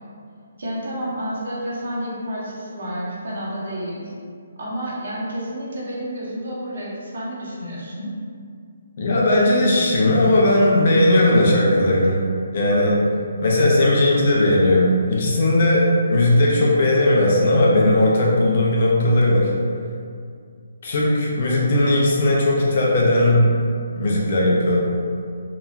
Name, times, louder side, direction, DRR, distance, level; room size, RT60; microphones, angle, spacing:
voice 1, 0.6-4.1 4.6-8.1, equal, 60° right, -7 dB, 0.8 m, -30 dB
voice 2, 9.0-12.2 12.5-13.0 13.4-19.5 20.8-23.5 24.0-24.8, left 1 dB, 35° left, -3 dB, 0.4 m, -17 dB
2.9 x 2.2 x 2.3 m, 2.3 s
hypercardioid pair, 180°, 0 cm